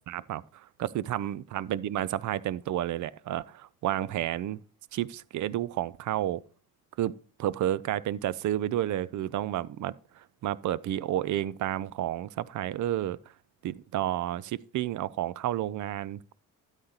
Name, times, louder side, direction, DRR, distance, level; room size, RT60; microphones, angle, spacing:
voice 1, 0.0-4.6 4.9-6.4 7.0-7.1 7.4-13.2 13.6-16.3, right 12 dB, 45° right, 0.5 m, -31 dB
13.0 x 8.2 x 2.9 m
hypercardioid pair, 55°, 42 cm